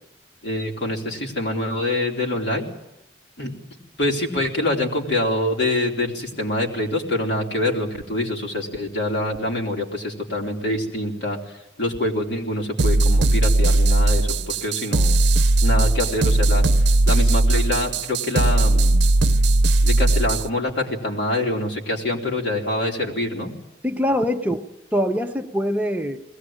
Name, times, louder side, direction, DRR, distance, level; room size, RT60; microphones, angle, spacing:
voice 1, 0.4-2.7 3.4-3.5 4.0-11.4 11.8-15.2 15.6-16.6 17.1-19.0 19.8-23.5, left 1 dB, 70° left, 0 dB, 3.9 m, -25 dB
sound 1, 12.8-20.5, right 2 dB, 65° right, 0.7 m, -18 dB
voice 2, 23.8-24.6 24.9-26.2, equal, 10° right, 3 dB, 0.9 m, -23 dB
21.0 x 17.0 x 8.9 m, 0.91 s
head